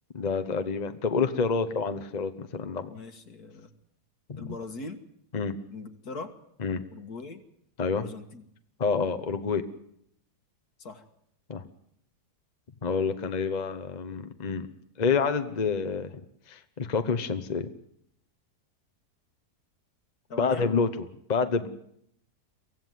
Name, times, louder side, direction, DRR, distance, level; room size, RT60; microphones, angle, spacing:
voice 1, 0.1-2.9 4.3-4.5 5.3-5.6 6.6-6.8 7.8-8.1 8.8-9.6 11.5-11.6 12.8-14.7 15.0-16.1 16.5-17.7 20.4-20.9 21.3-21.7, left 5 dB, 30° left, 9 dB, 1.1 m, -28 dB
voice 2, 2.9-3.7 4.4-5.0 5.7-6.3 6.9-7.4 7.9-8.4 10.8-11.0 20.3-20.7, left 3 dB, 65° left, 7 dB, 2.3 m, -40 dB
24.0 x 16.0 x 9.4 m, 0.72 s
omnidirectional pair, 1.7 m